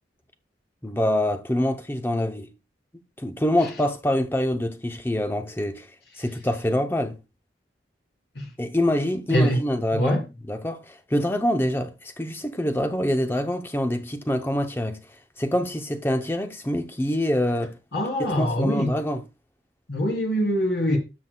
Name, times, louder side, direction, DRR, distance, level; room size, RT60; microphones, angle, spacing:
voice 1, 0.8-2.5 3.2-5.9 6.2-7.2 8.6-15.0 15.4-17.8 18.2-19.2, left 1 dB, 10° left, 0.6 m, -25 dB
voice 2, 17.9-18.9 19.9-21.0, equal, 80° left, 3.0 m, -23 dB
12.0 x 6.0 x 2.2 m
head